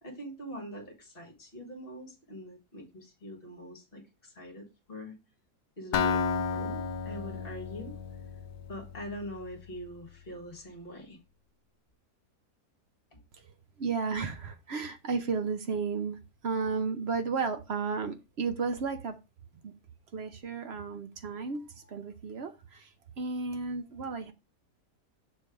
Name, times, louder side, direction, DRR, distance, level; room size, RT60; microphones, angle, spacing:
voice 1, 0.0-5.2 5.8-8.0 8.7-11.2 13.1-13.2, equal, 35° left, 2 dB, 1.7 m, -43 dB
Acoustic guitar, 5.9-9.8, left 5 dB, 85° left, 1.3 m, -33 dB
voice 2, 13.8-19.1 19.6-19.7 20.1-24.3, right 4 dB, 60° right, 8 dB, 0.7 m, -33 dB
6.8 x 3.3 x 4.7 m, 0.28 s
omnidirectional pair, 1.8 m